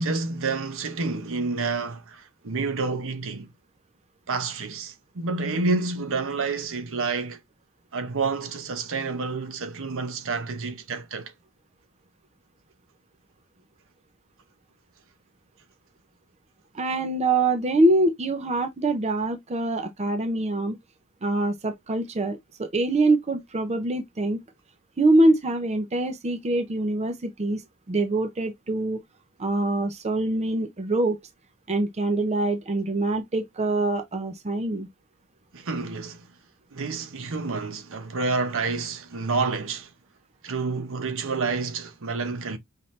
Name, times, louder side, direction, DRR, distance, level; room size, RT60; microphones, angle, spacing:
voice 1, 0.0-3.5 4.3-7.4 7.9-11.3 35.5-36.3 36.7-39.9 40.4-42.6, right 4 dB, 60° right, 0.8 m, -29 dB
voice 2, 16.7-20.8 21.2-24.4 25.0-27.6 27.9-29.0 29.4-31.2 31.7-34.9, right 2 dB, 30° right, 0.6 m, -24 dB
5.6 x 2.6 x 3.2 m
head